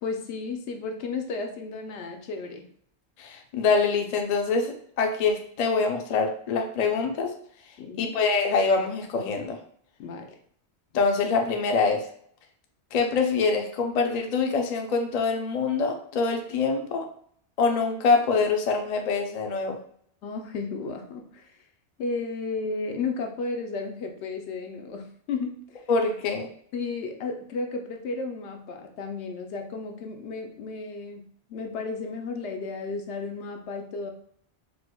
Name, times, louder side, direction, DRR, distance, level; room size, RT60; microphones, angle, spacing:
voice 1, 0.0-2.7 7.8-8.1 10.0-10.4 20.2-21.6 22.0-25.8 26.7-34.1, left 4 dB, 80° left, 4 dB, 0.9 m, -33 dB
voice 2, 3.2-7.3 8.0-9.6 10.9-12.0 12.9-17.1 17.6-19.8 25.9-26.5, left 4 dB, 55° left, 3 dB, 0.5 m, -25 dB
4.6 x 2.1 x 2.2 m, 0.63 s
omnidirectional pair, 1.1 m